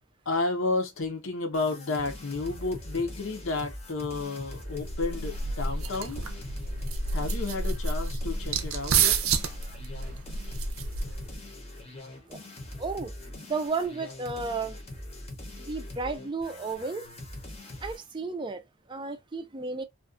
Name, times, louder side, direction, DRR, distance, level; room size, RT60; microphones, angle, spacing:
voice 1, 0.3-6.2 7.1-9.2, left 3 dB, 65° left, 0.7 m, -31 dB
sound 1, 1.5-18.1, left 1 dB, 30° left, 0.7 m, -42 dB
sound 2, 4.7-11.4, right 4 dB, 80° right, 0.5 m, -30 dB
voice 2, 12.8-13.1 13.4-14.7 15.7-17.0 17.8-18.6 18.9-19.8, right 4 dB, 20° right, 0.4 m, -33 dB
2.5 x 2.3 x 2.4 m
head